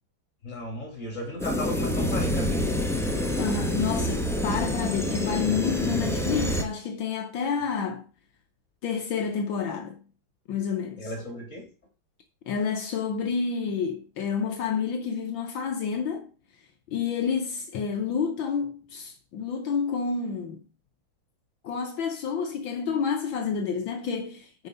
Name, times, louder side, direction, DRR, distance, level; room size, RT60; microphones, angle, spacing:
voice 1, 0.4-2.7 11.0-11.7, left 1 dB, 35° left, 3.5 m, -35 dB
sound 1, 1.4-6.6, equal, 5° left, 0.5 m, -27 dB
voice 2, 3.3-8.1 8.8-10.0 10.5-11.1 12.5-16.3 16.9-20.6 21.6-24.7, left 6 dB, 70° left, 1.6 m, -29 dB
9.5 x 4.9 x 5.3 m
omnidirectional pair, 2.3 m